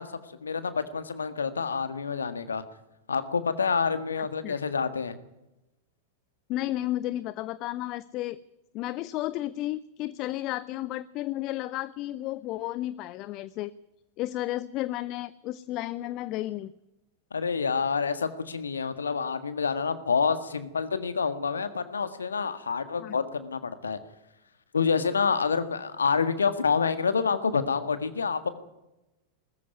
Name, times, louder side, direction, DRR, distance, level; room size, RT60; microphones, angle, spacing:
voice 1, 0.0-2.6 3.1-5.2 17.3-24.0 24.7-28.5, left 5 dB, 75° left, 11 dB, 1.7 m, -28 dB
voice 2, 6.5-8.4 8.7-13.7 14.2-16.7 23.0-23.2, left 15 dB, 40° left, 18 dB, 0.7 m, -32 dB
20.5 x 14.0 x 9.4 m, 0.94 s
figure-of-eight pair, 90°, 0 cm